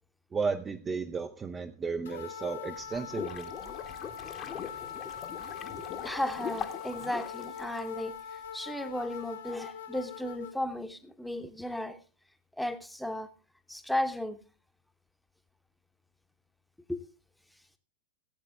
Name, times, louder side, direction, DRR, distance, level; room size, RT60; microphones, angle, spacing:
voice 1, 0.3-3.5, right 5 dB, 20° right, 6 dB, 0.6 m, -34 dB
sound 1, 2.1-10.6, left 8 dB, 60° left, 1.2 m, -42 dB
sound 2, 2.8-8.2, left 8 dB, 30° left, 1.0 m, -41 dB
voice 2, 5.7-12.0 12.6-13.3 13.7-14.4 16.9-17.0, left 1 dB, ahead, 8 dB, 1.0 m, -35 dB
16.5 x 8.4 x 3.4 m, 0.35 s
figure-of-eight pair, 90°, 0 cm